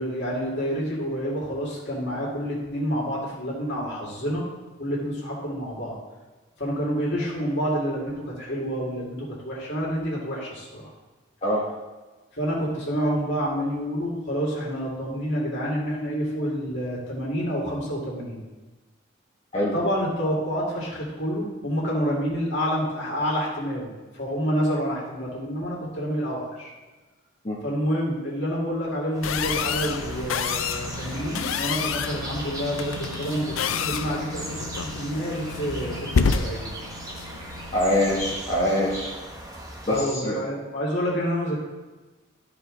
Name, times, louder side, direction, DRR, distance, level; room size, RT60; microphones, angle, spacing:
voice 1, 0.0-4.4 4.8-6.0 6.6-10.9 12.3-18.4 19.7-26.7 27.6-36.7 39.9-41.6, equal, 60° left, -5 dB, 2.3 m, -28 dB
sound 1, 29.1-40.0, right 1 dB, 15° right, 1.0 m, -38 dB
sound 2, 29.2-38.3, left 6 dB, 80° left, 0.4 m, -29 dB
voice 2, 37.7-39.1 39.9-40.4, left 1 dB, 30° left, -6 dB, 1.3 m, -24 dB
12.5 x 4.9 x 3.8 m, 1.2 s
head